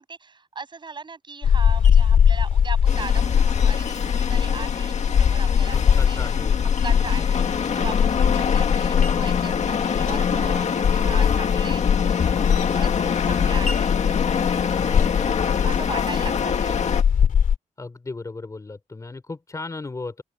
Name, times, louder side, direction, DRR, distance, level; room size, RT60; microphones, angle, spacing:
voice 1, 0.0-6.4 6.8-14.0 14.8-14.9 15.2-17.0, right 4 dB, 35° right, 7.4 m, -38 dB
sound 1, 1.4-17.5, left 7 dB, 85° left, 2.6 m, -21 dB
sound 2, 2.9-17.0, left 6 dB, 60° left, 1.8 m, -26 dB
voice 2, 5.7-6.6 6.9-7.1 14.8-15.7 17.8-20.2, left 3 dB, 25° left, 4.3 m, -36 dB
open air
wide cardioid pair, 155°, 13 cm